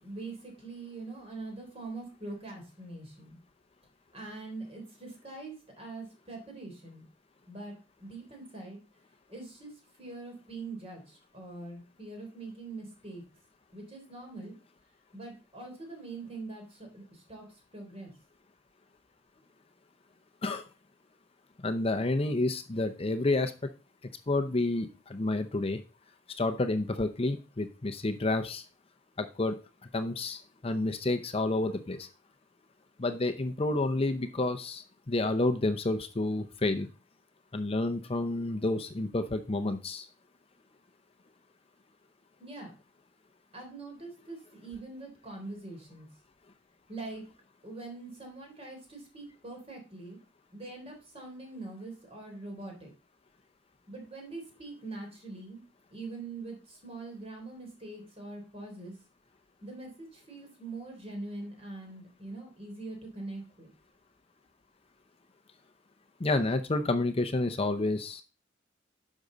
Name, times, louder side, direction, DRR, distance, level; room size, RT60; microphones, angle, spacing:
voice 1, 0.0-3.4 4.1-7.1 7.5-7.7 8.0-8.8 9.3-9.7 10.0-13.2 13.7-14.6 15.1-17.5 17.7-18.1 42.4-42.7 43.5-46.1 46.9-47.3 47.6-50.2 50.5-52.9 53.9-55.6 55.9-58.9 59.6-63.7, right 2 dB, 35° right, 1 dB, 3.6 m, -43 dB
voice 2, 21.6-23.5 24.3-25.8 26.4-28.6 29.2-29.6 29.9-32.1 33.0-36.9 37.5-40.1 66.2-68.2, left 2 dB, 30° left, 8 dB, 0.7 m, -29 dB
10.5 x 6.4 x 3.9 m, 0.33 s
head